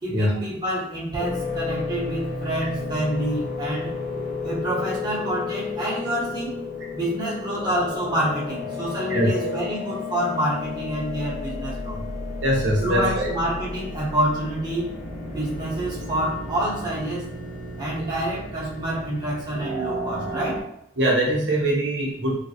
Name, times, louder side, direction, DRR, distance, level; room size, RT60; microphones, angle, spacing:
voice 1, 0.0-3.9 4.4-6.6 6.9-12.0 12.8-14.9 15.3-17.3 17.8-20.6, right 1 dB, 20° right, -7 dB, 0.9 m, -27 dB
sound 1, 1.2-20.6, left 3 dB, 45° left, 0.6 m, -32 dB
voice 2, 12.4-13.3 18.0-18.1 21.0-22.4, right 1 dB, 65° right, -3 dB, 0.7 m, -22 dB
3.2 x 2.1 x 2.7 m, 0.74 s
head